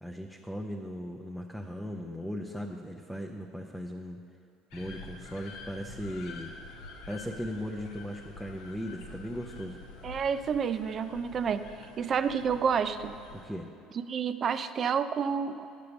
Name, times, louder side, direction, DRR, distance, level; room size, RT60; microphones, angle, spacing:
voice 1, 0.0-4.2 4.7-6.5 7.1-9.8 13.3-13.7, equal, ahead, 0 dB, 0.6 m, -38 dB
sound 1, 4.7-13.5, left 3 dB, 85° left, 1.5 m, -47 dB
voice 2, 10.0-11.6 12.0-13.1 14.1-15.7, right 6 dB, 40° right, 11 dB, 0.5 m, -29 dB
9.3 x 6.8 x 6.9 m, 2.5 s
cardioid pair, 110°, 0 cm